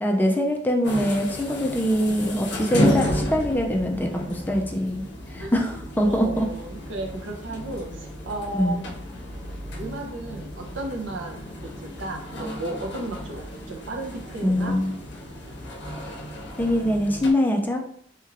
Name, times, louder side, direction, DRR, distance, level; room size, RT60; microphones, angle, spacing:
voice 1, 0.0-6.5 8.5-8.8 14.4-14.9 16.6-17.8, equal, 10° left, 2 dB, 0.3 m, -23 dB
sound 1, 0.8-17.3, equal, 65° left, 0.6 m, -32 dB
voice 2, 6.0-8.8 9.8-14.8, right 2 dB, 75° right, 2 dB, 0.6 m, -34 dB
2.9 x 2.8 x 2.5 m, 0.65 s
head